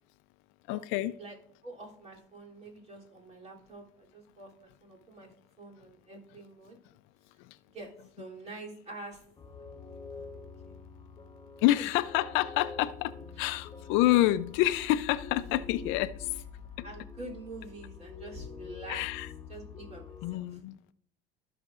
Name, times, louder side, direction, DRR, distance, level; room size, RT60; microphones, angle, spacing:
voice 1, 0.7-1.1 7.4-7.6 11.6-16.4 18.9-19.3 20.2-20.8, left 15 dB, 75° left, 0.5 m, -28 dB
voice 2, 1.6-5.3 5.6-6.8 7.7-9.2 10.1-10.2 11.7-11.9 13.3-13.5 16.8-19.0 19.5-20.6, right 2 dB, 35° right, 3.1 m, -46 dB
sound 1, 9.4-20.3, left 5 dB, 20° left, 1.1 m, -46 dB
15.0 x 5.8 x 2.5 m
supercardioid pair, 95°, 20 cm